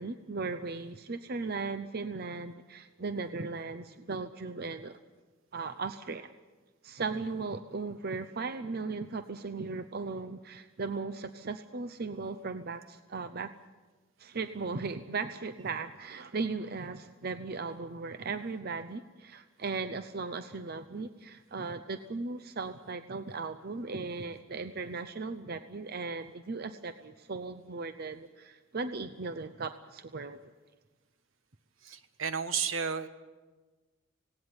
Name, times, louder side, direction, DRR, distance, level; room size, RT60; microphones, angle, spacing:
voice 1, 0.0-5.0 5.5-6.3 6.8-13.5 14.2-30.4, right 4 dB, 50° right, 10 dB, 0.7 m, -37 dB
voice 2, 31.8-33.1, right 6 dB, 75° right, 10 dB, 1.4 m, -32 dB
18.5 x 18.0 x 9.7 m, 1.3 s
head